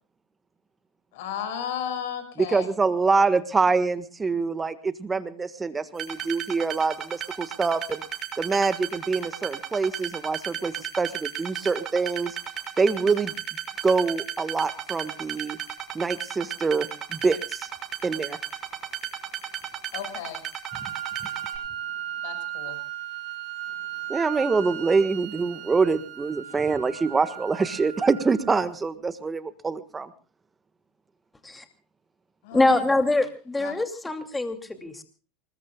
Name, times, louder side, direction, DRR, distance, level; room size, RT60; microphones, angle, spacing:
voice 1, 1.1-2.7 19.9-20.4 22.2-22.8 32.4-32.8 33.6-33.8, left 9 dB, 65° left, 9 dB, 6.7 m, -34 dB
voice 2, 2.5-8.0 8.4-12.4 12.8-13.3 13.8-15.6 15.9-17.7 18.0-18.4 20.8-20.9 24.1-30.1, right 4 dB, 20° right, 12 dB, 1.5 m, -25 dB
sound 1, 6.0-21.6, right 10 dB, 35° right, 6.1 m, -34 dB
Wind instrument woodwind instrument, 20.6-28.6, right 11 dB, 55° right, 6.3 m, -36 dB
voice 3, 32.5-35.0, left 2 dB, 10° left, 7 dB, 2.5 m, -24 dB
28.0 x 20.5 x 2.3 m, 0.36 s
hypercardioid pair, 80°, 0 cm